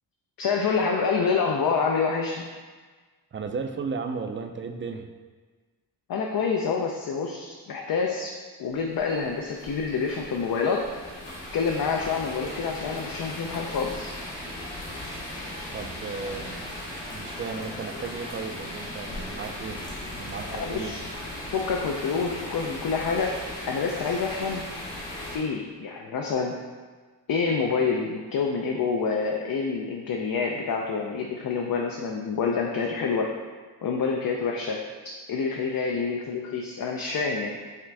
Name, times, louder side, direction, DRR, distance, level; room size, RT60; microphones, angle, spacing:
voice 1, 0.4-2.4 6.1-8.3 8.6-10.8 11.5-14.1 20.5-21.0 21.5-23.3 23.7-24.6 25.3-26.5 27.3-33.3 33.8-34.8 35.3-37.5, left 5 dB, 55° left, 1 dB, 0.5 m, -27 dB
voice 2, 3.3-5.1 15.7-19.8 20.2-20.9, right 5 dB, 30° right, 5 dB, 0.4 m, -35 dB
sound 1, 8.7-25.4, left 1 dB, 85° left, 1.1 m, -37 dB
5.6 x 2.5 x 3.3 m, 1.4 s
cardioid pair, 60°, 43 cm